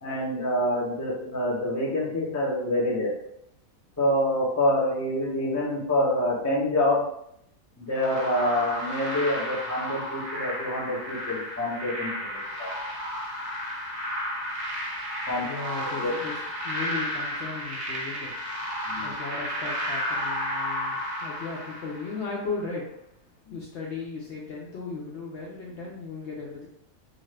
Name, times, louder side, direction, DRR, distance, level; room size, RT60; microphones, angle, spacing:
voice 1, 0.0-3.1 4.0-7.0 7.8-12.7 15.3-15.4 16.0-16.1 18.9-19.2 23.5-23.6, left 1 dB, 20° left, -6 dB, 0.5 m, -26 dB
sound 1, 8.0-22.3, equal, 60° right, 0.3 m, -32 dB
voice 2, 15.4-16.4 16.6-18.3 19.0-22.8 23.5-26.7, left 4 dB, 65° left, -3 dB, 0.7 m, -36 dB
2.5 x 2.4 x 3.2 m, 0.75 s
omnidirectional pair, 1.5 m